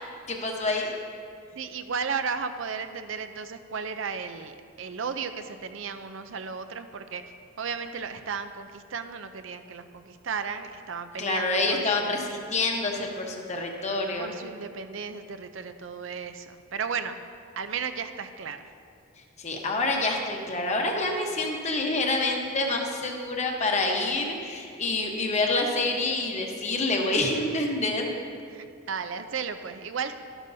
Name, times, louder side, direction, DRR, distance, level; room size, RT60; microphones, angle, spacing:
voice 1, 0.3-1.0 11.2-14.3 19.4-28.1, left 2 dB, 35° left, 1 dB, 1.0 m, -27 dB
voice 2, 1.5-7.2 7.6-12.2 14.1-17.2 17.6-18.7 28.5-30.2, right 6 dB, 65° right, 9 dB, 0.5 m, -34 dB
12.5 x 12.0 x 2.7 m, 2.4 s
head